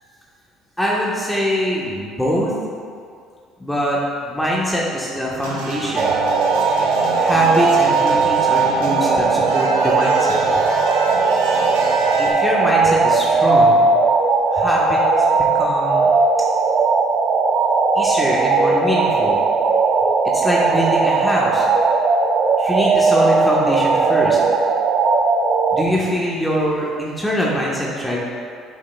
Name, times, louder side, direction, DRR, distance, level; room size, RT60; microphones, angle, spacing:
voice 1, 0.8-2.5 3.6-6.2 7.1-10.4 12.0-13.9 14.5-15.0 15.5-16.2 17.9-19.4 20.3-21.7 22.6-24.4 25.7-28.2, equal, 5° left, -5 dB, 1.1 m, -23 dB
sound 1, 5.4-12.3, right 2 dB, 90° right, 1.0 m, -29 dB
sound 2, 6.0-25.8, right 4 dB, 55° right, 0.5 m, -17 dB
7.3 x 6.5 x 2.2 m, 2.2 s
supercardioid pair, 80°, 0 cm